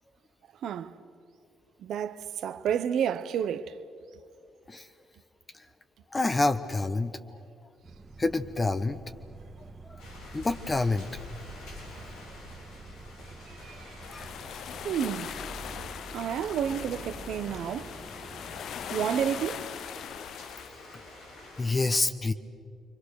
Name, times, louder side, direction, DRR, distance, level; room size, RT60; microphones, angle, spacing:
voice 1, 0.6-0.9 1.8-3.7 13.7-13.8 14.8-15.3 16.1-17.9 18.9-19.6, right 8 dB, 70° right, 1.0 m, -30 dB
voice 2, 6.1-7.2 8.2-9.0 9.8-10.0 10.3-11.1 14.1-14.3 21.6-22.3, left 3 dB, 30° left, 1.0 m, -27 dB
sound 1, 7.8-19.5, right 2 dB, 25° right, 1.8 m, -48 dB
sound 2, 10.0-21.7, left 2 dB, 85° left, 7.3 m, -47 dB
sound 3, 14.0-20.7, left 9 dB, 70° left, 0.5 m, -40 dB
29.0 x 23.5 x 6.6 m
supercardioid pair, 55°, 0 cm